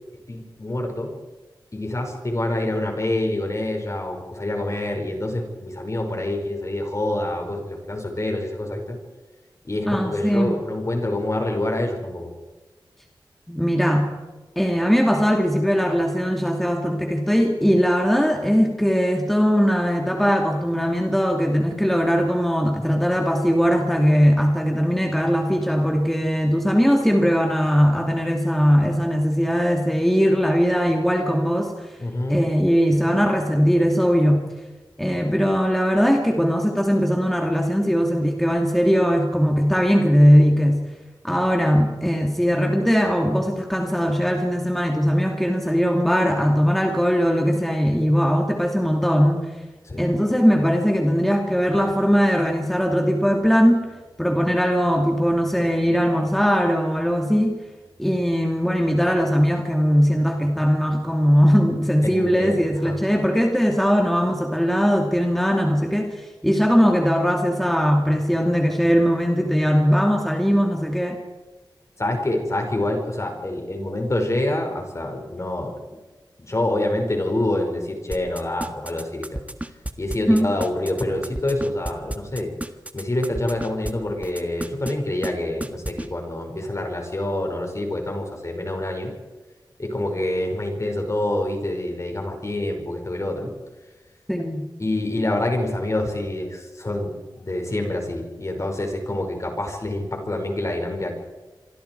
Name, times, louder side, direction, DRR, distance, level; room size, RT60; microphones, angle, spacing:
voice 1, 0.3-1.1 1.7-9.0 9.6-12.3 32.0-32.4 49.8-50.1 62.0-63.0 72.0-75.7 76.4-79.4 80.0-82.5 82.9-89.1 89.8-93.5 94.8-101.1, left 1 dB, 40° left, 3 dB, 5.3 m, -26 dB
voice 2, 9.9-10.6 13.5-14.1 14.6-31.7 32.3-34.4 35.0-40.8 41.2-49.4 50.0-53.9 54.2-57.5 58.0-71.2 80.3-80.5 94.3-94.7, equal, 5° left, 1 dB, 2.6 m, -20 dB
sound 1, 78.1-83.9 84.2-84.9 85.2-85.3 85.6-86.1, right 1 dB, 15° right, 1.6 m, -31 dB
27.5 x 24.0 x 4.7 m, 1.2 s
wide cardioid pair, 70°, 8 cm